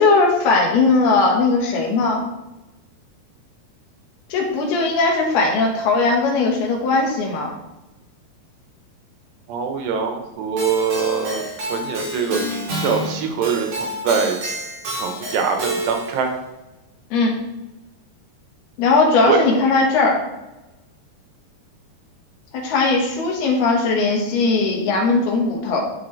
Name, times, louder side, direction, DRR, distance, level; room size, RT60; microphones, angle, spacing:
voice 1, 0.0-2.2 4.3-7.5 17.1-17.3 18.8-20.2 22.5-25.8, left 3 dB, 75° left, 0 dB, 3.5 m, -18 dB
voice 2, 9.5-14.6 15.0-16.3 19.3-19.4, right 6 dB, 90° right, 3 dB, 3.3 m, -23 dB
Keyboard (musical), 10.6-16.2, right 1 dB, 45° right, 3.5 m, -29 dB
10.5 x 6.5 x 3.3 m, 1.0 s
omnidirectional pair, 4.7 m